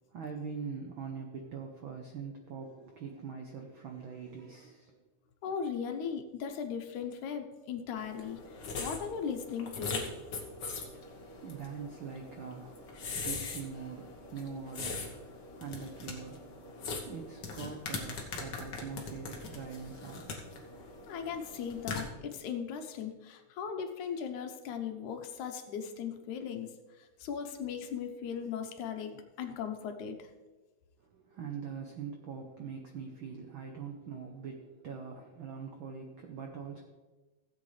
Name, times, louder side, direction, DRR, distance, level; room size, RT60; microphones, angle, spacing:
voice 1, 0.1-5.0 10.9-16.7 16.9-21.1 31.1-36.8, right 6 dB, 75° right, 3 dB, 1.1 m, -43 dB
voice 2, 5.4-10.1 21.1-26.7 27.0-30.3, left 7 dB, 80° left, 5 dB, 2.3 m, -38 dB
sound 1, 8.0-22.1, left 4 dB, 50° left, 1.5 m, -41 dB
16.0 x 8.2 x 3.3 m, 1.2 s
omnidirectional pair, 3.5 m